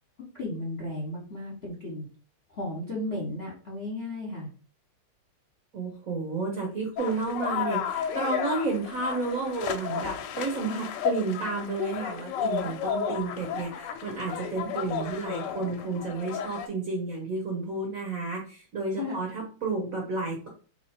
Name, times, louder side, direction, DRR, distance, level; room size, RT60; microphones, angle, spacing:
voice 1, 0.3-2.1 2.5-4.5 18.9-19.2, left 1 dB, 45° left, -3 dB, 0.8 m, -34 dB
voice 2, 5.7-20.5, right 3 dB, 60° right, 0 dB, 0.9 m, -31 dB
sound 1, 7.0-16.7, left 7 dB, 75° left, 1.1 m, -33 dB
3.1 x 3.0 x 4.2 m, 0.39 s
omnidirectional pair, 2.3 m